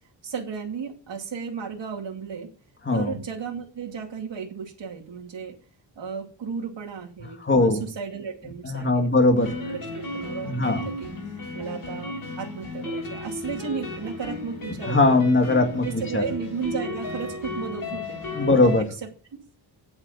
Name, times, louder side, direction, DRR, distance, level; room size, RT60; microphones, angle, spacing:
voice 1, 0.2-2.5 2.9-5.5 6.0-9.1 9.4-15.2 15.8-18.7 19.0-19.1, right 6 dB, 70° right, 0 dB, 2.6 m, -34 dB
voice 2, 7.4-7.8 8.6-9.6 10.4-10.8 14.8-16.3 18.3-18.9, left 2 dB, 25° left, 4 dB, 2.2 m, -20 dB
sound 1, 9.4-18.8, left 2 dB, 50° left, 6.7 m, -34 dB
8.8 x 7.9 x 7.3 m, 0.39 s
wide cardioid pair, 115°, 45 cm